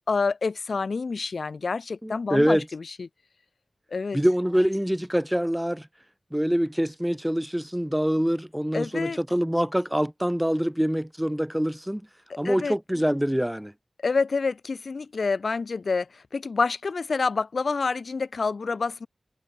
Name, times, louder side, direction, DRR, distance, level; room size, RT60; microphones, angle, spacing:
voice 1, 0.1-3.1 3.9-4.2 8.7-9.2 12.4-12.8 14.0-16.1 16.3-19.1, left 4 dB, 70° left, 1.3 m, -27 dB
voice 2, 2.0-2.7 4.1-5.9 6.3-12.0 12.4-13.7, equal, 5° right, 1.4 m, -25 dB
wide cardioid pair, 65°, 0 cm